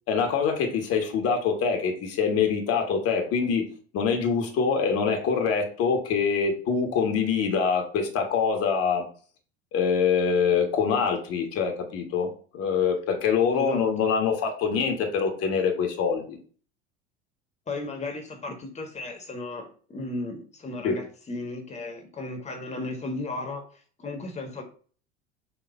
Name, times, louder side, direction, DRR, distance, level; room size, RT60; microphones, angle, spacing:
voice 1, 0.1-3.6 3.9-9.0 9.7-12.3 12.5-16.4 20.8-21.0, left 6 dB, 45° left, 3 dB, 1.6 m, -24 dB
voice 2, 13.5-13.8 17.7-24.6, left 2 dB, 20° left, 4 dB, 1.5 m, -35 dB
7.1 x 3.2 x 4.4 m, 0.42 s
figure-of-eight pair, 70°, 34 cm